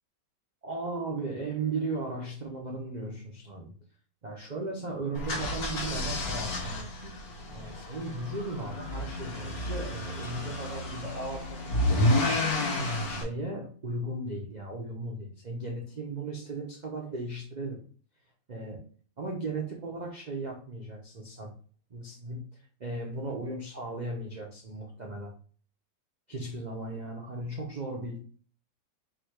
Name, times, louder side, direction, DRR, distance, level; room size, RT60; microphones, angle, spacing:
voice 1, 0.6-3.8 4.2-7.2 7.5-12.0 12.3-12.5 13.1-17.8 18.5-18.9 19.2-21.5 21.9-25.3 26.3-28.3, right 2 dB, 75° right, -1 dB, 0.4 m, -36 dB
sound 1, 5.1-13.2, left 1 dB, 60° left, 1.5 m, -30 dB
3.8 x 2.8 x 4.6 m, 0.43 s
omnidirectional pair, 1.9 m